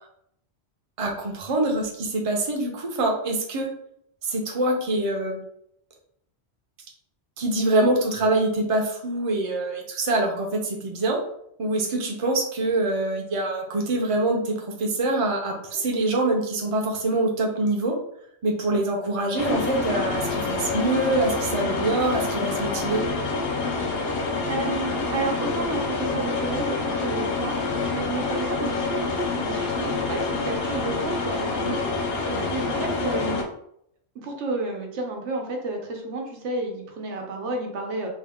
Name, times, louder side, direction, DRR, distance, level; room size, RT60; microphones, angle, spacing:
voice 1, 1.0-3.7 4.2-5.4 7.4-11.2 11.6-18.0 18.4-23.0, right 2 dB, 35° right, 1 dB, 0.6 m, -25 dB
sound 1, 19.4-33.4, left 3 dB, 65° left, 0.8 m, -27 dB
voice 2, 24.5-33.4 34.2-38.1, right 2 dB, 85° right, 2 dB, 1.1 m, -31 dB
3.6 x 2.2 x 3.4 m, 0.72 s
omnidirectional pair, 1.2 m